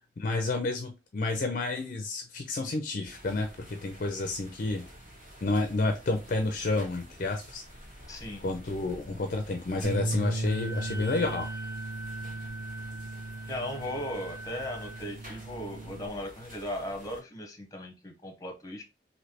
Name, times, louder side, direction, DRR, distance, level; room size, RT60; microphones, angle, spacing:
voice 1, 0.2-4.8 5.4-7.6 8.4-11.5, left 2 dB, 50° left, 4 dB, 0.5 m, -30 dB
sound 1, 3.0-17.2, equal, 45° right, 1.8 m, -50 dB
voice 2, 8.1-8.4 13.5-18.8, left 1 dB, 20° left, 2 dB, 0.9 m, -37 dB
Bass guitar, 9.8-16.1, right 2 dB, 60° right, 0.7 m, -36 dB
Wind instrument woodwind instrument, 10.4-15.1, right 1 dB, 20° right, 0.4 m, -43 dB
3.2 x 2.7 x 2.8 m, 0.27 s
head